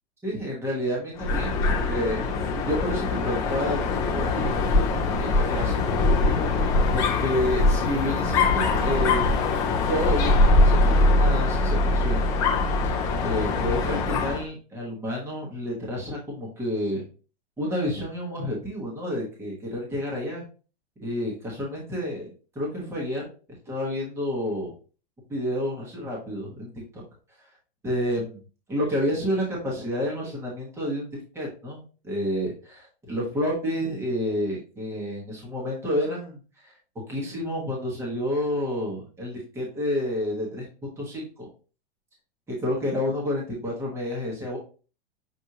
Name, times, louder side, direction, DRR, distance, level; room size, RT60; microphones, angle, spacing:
voice 1, 0.2-2.2 2.5-3.9 4.1-4.5 5.2-6.1 6.9-9.2 9.9-12.2 13.2-17.0 17.6-20.4 21.0-23.3 23.7-24.7 25.3-26.7 27.8-28.4 28.7-36.7 37.1-40.7 41.0-41.5 42.5-44.6, equal, 10° right, -3 dB, 1.1 m, -29 dB
Dog, 1.2-14.5, left 3 dB, 10° left, 0.3 m, -22 dB
6.2 x 2.6 x 2.7 m, 0.36 s
hypercardioid pair, 150°, 31 cm